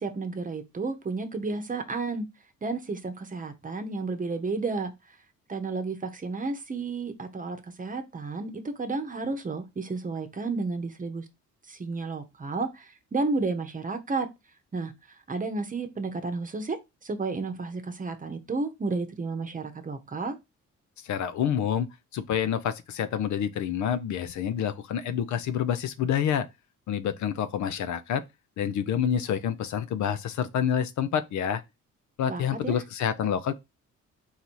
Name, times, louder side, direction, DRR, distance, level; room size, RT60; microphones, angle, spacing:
voice 1, 0.0-2.3 2.6-4.9 5.5-11.3 11.7-14.3 14.7-20.4 32.3-32.8, right 3 dB, 25° right, 0.9 m, -32 dB
voice 2, 21.0-21.9 22.1-26.5 26.9-28.2 28.6-31.6 32.2-33.5, left 8 dB, 70° left, 0.6 m, -28 dB
4.0 x 2.7 x 4.5 m
cardioid pair, 90°, 30 cm